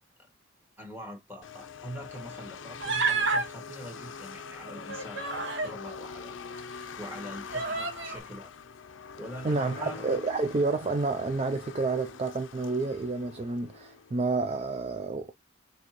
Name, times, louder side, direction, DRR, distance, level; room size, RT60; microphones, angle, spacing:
voice 1, 0.8-8.5 9.2-10.1, equal, 10° right, 1.9 m, -43 dB
sound 1, 1.4-14.5, left 6 dB, 75° left, 0.5 m, -44 dB
Human voice, 2.8-3.5 4.7-5.8 6.5-6.6 7.5-8.2, right 4 dB, 65° right, 0.9 m, -29 dB
voice 2, 9.4-15.3, right 3 dB, 30° right, 0.4 m, -29 dB
6.2 x 2.8 x 3.0 m
head